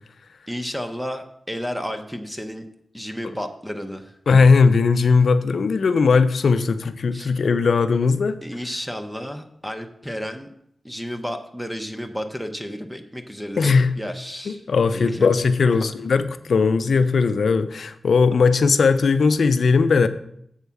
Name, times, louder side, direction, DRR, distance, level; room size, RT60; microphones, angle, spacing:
voice 1, 0.5-2.7 2.9-4.1 7.1-7.3 8.4-10.5 10.8-14.6 14.9-15.3 15.7-15.9, equal, 5° right, 6 dB, 0.6 m, -32 dB
voice 2, 4.3-8.4 13.6-13.9 14.5-20.1, left 4 dB, 70° left, 11 dB, 0.5 m, -18 dB
7.2 x 4.7 x 6.9 m, 0.71 s
wide cardioid pair, 170°, 0 cm